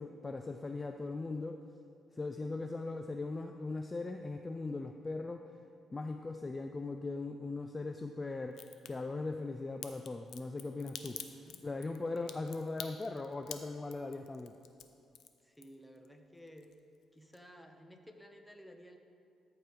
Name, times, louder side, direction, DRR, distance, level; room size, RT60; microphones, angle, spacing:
voice 1, 0.0-1.6 2.1-5.5 5.9-8.6 8.9-11.2 11.6-14.6, left 3 dB, 25° left, 6 dB, 0.3 m, -39 dB
Crack, 8.5-8.9 9.8-16.1 16.4-17.0 17.3-17.4, left 9 dB, 75° left, 0.6 m, -47 dB
voice 2, 11.1-11.6 12.2-12.4 15.4-16.7 17.1-19.0, equal, 5° left, 5 dB, 0.9 m, -55 dB
13.5 x 4.8 x 4.6 m, 2.5 s
cardioid pair, 90°, 0 cm